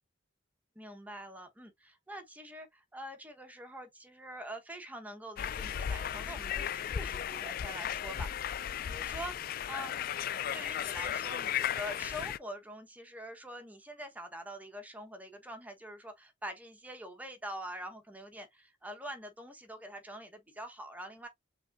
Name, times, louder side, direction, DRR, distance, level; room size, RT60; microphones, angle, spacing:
voice 1, 0.7-8.3 8.9-9.4 9.7-9.9 10.2-21.3, equal, 10° right, 1.2 m, -45 dB
sound 1, 5.4-12.4, left 9 dB, 45° left, 0.3 m, -35 dB
5.3 x 3.5 x 2.6 m
head